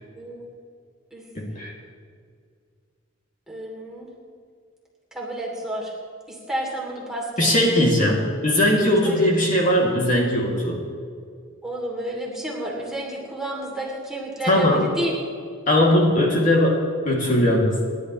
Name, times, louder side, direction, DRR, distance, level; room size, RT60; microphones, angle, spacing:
voice 1, 1.3-1.7 7.4-10.8 14.4-14.9 15.7-17.8, left 1 dB, 40° left, -3 dB, 2.7 m, -19 dB
voice 2, 3.5-4.1 5.1-5.9 6.3-7.5 9.0-9.2 11.6-15.1, right 1 dB, 5° right, -4 dB, 3.1 m, -31 dB
29.0 x 11.5 x 3.3 m, 2.1 s
head